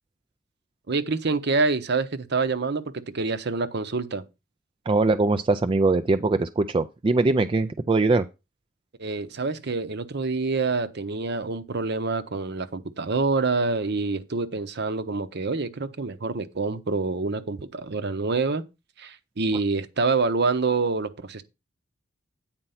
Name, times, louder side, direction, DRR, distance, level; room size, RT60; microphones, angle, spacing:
voice 1, 0.9-4.2 9.0-18.6 19.0-21.4, right 3 dB, 60° right, 0.8 m, -26 dB
voice 2, 4.9-8.3, right 3 dB, 25° right, 0.4 m, -22 dB
9.1 x 4.4 x 5.7 m
head